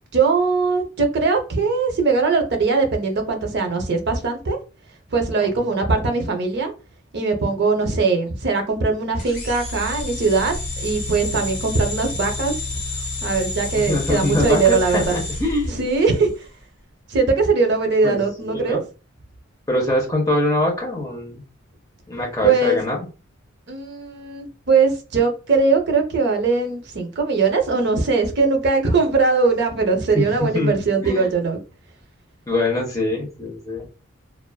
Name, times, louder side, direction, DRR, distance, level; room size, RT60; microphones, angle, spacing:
voice 1, 0.1-4.6 5.1-6.7 7.1-12.6 13.2-15.2 15.8-16.5 17.1-18.8 22.4-22.8 23.7-31.6, right 4 dB, 50° right, 0.5 m, -20 dB
sound 1, 9.2-16.3, left 2 dB, 55° left, 1.1 m, -29 dB
voice 2, 13.8-15.8 18.0-18.8 19.7-21.4 22.1-23.1 30.1-30.3 30.5-31.3 32.5-33.9, left 1 dB, 15° left, 0.6 m, -23 dB
2.4 x 2.3 x 2.2 m
head